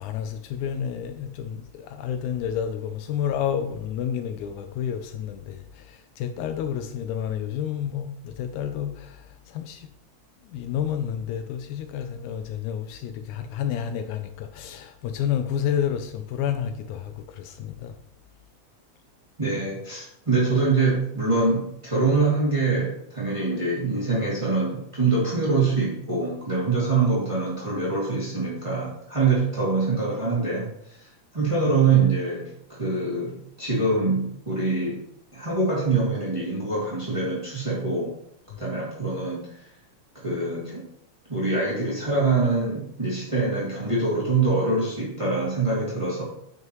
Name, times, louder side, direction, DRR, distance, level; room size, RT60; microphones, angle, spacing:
voice 1, 0.0-9.9 10.4-18.0 38.5-38.6, left 9 dB, 80° left, 1.9 m, -30 dB
voice 2, 19.4-31.1 31.3-35.0 35.3-38.1 38.6-39.5 40.1-40.8 41.3-46.2, right 3 dB, 10° right, 1.8 m, -24 dB
9.2 x 6.1 x 3.0 m
omnidirectional pair, 3.5 m